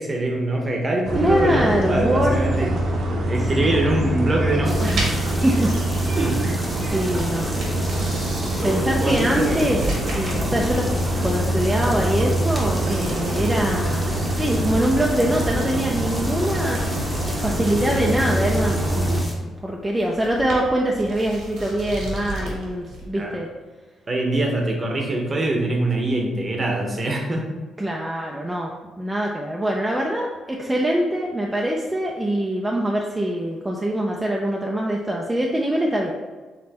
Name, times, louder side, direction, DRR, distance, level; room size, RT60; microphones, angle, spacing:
voice 1, 0.0-2.7 3.3-5.2 6.2-6.4 8.6-9.6 10.5-10.6 23.1-23.4 24.1-27.5, right 1 dB, 30° right, 1 dB, 0.9 m, -24 dB
sound 1, 1.0-19.2, right 1 dB, 65° right, 0.9 m, -24 dB
voice 2, 1.2-2.4 3.4-3.5 4.8-5.1 5.4-5.7 6.2-6.3 6.8-7.6 8.6-9.8 10.1-10.9 11.2-16.8 17.4-19.3 19.6-23.5 27.8-36.1, right 1 dB, 15° right, -2 dB, 0.5 m, -23 dB
sound 2, 4.6-19.3, equal, 5° left, 0.9 m, -37 dB
sound 3, 4.6-23.1, right 1 dB, 80° right, 1.4 m, -36 dB
5.3 x 3.1 x 2.9 m, 1.3 s
cardioid pair, 90°, 0 cm